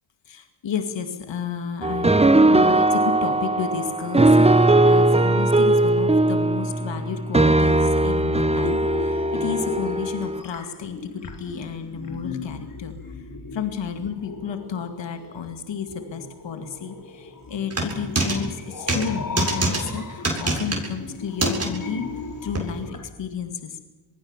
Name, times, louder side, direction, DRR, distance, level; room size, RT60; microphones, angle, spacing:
voice 1, 0.3-13.0 13.5-22.1 22.4-23.8, left 7 dB, 70° left, 7 dB, 2.3 m, -32 dB
sound 1, 1.8-10.4, right 2 dB, 15° right, 1.0 m, -19 dB
sound 2, 8.4-23.0, left 3 dB, 45° left, 4.6 m, -37 dB
sound 3, 17.7-18.4 18.9-19.1 19.4-19.8 20.2-20.9 21.4-21.7 22.6-22.7, right 2 dB, 30° right, 7.8 m, -23 dB
25.0 x 21.0 x 7.4 m, 1.2 s
cardioid pair, 60°, 46 cm